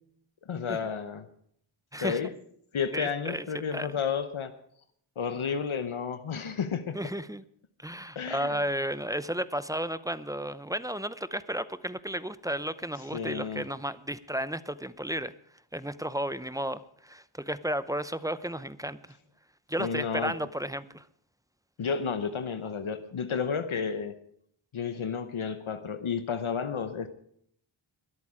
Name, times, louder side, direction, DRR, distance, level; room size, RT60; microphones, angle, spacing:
voice 1, 0.5-1.3 2.0-2.3 2.7-4.5 5.2-7.0 8.2-8.6 13.1-13.7 19.8-20.3 21.8-24.1 24.7-27.1, left 6 dB, 75° left, 9 dB, 0.9 m, -31 dB
voice 2, 2.9-3.5 3.7-3.9 6.9-7.4 7.8-15.3 15.7-19.2 19.7-21.1, right 1 dB, 5° right, 14 dB, 0.6 m, -33 dB
22.0 x 8.4 x 4.9 m, 0.67 s
wide cardioid pair, 60°, 49 cm